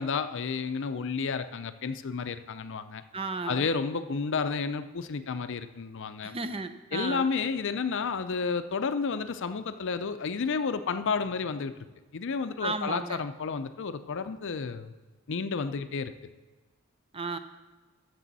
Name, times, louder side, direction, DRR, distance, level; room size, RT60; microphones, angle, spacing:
voice 1, 0.0-3.0 3.5-6.4 6.9-11.9 12.1-14.9 15.3-16.1, left 5 dB, 60° left, 11 dB, 0.5 m, -31 dB
voice 2, 3.1-3.7 6.2-7.3 12.6-13.2 17.1-17.4, right 3 dB, 25° right, 10 dB, 0.5 m, -34 dB
13.5 x 6.8 x 4.1 m, 1.3 s
head